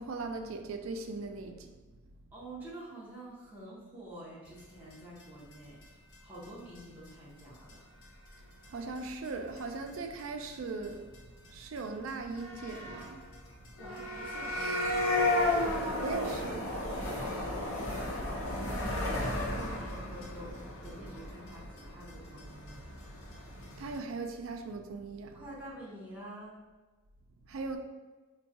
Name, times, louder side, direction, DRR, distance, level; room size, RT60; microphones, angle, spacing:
voice 1, 0.0-1.7 8.7-11.1 11.5-13.2 16.0-16.7 23.8-25.4 27.5-27.8, right 3 dB, 70° right, 0.4 m, -39 dB
voice 2, 2.3-5.9 6.2-7.8 13.8-22.8 25.3-26.6, right 1 dB, 10° right, 1.3 m, -48 dB
sound 1, 4.9-5.0 5.2-5.3 5.5-5.6 5.8-5.9 6.1-6.2 6.4-6.5 6.7-7.1 7.4-7.5 7.7-7.8 8.0-8.3 8.6-8.7 9.0-9.6 9.9-10.2 10.5-10.6 10.8-10.9 11.1-11.2 11.4-11.5 11.7-11.8 12.1-24.0, left 1 dB, 70° left, 0.8 m, -34 dB
4.4 x 2.2 x 2.8 m
head